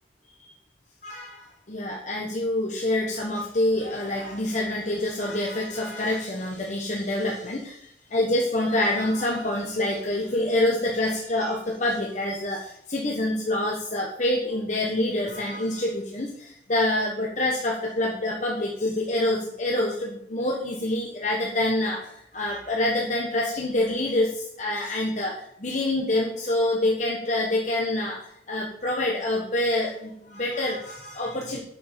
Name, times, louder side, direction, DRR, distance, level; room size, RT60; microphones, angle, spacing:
voice 1, 1.0-31.6, left 1 dB, 40° left, -1 dB, 1.3 m, -26 dB
8.7 x 6.4 x 6.9 m, 0.75 s
head